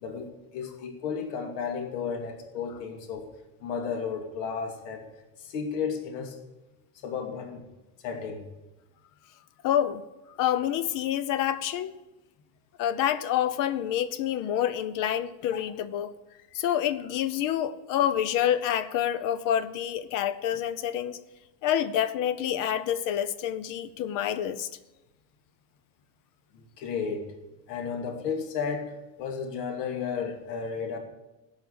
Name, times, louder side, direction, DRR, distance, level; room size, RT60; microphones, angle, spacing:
voice 1, 0.0-3.3 3.6-5.1 5.4-6.4 6.9-7.6 8.0-8.4 26.5-27.3 27.7-31.0, left 6 dB, 80° left, 4 dB, 2.6 m, -33 dB
voice 2, 9.6-10.0 10.4-11.9 12.8-16.1 16.5-21.2 21.6-24.7, left 10 dB, 40° left, 15 dB, 0.8 m, -27 dB
16.5 x 5.7 x 8.1 m, 1.1 s
supercardioid pair, 150°, 47 cm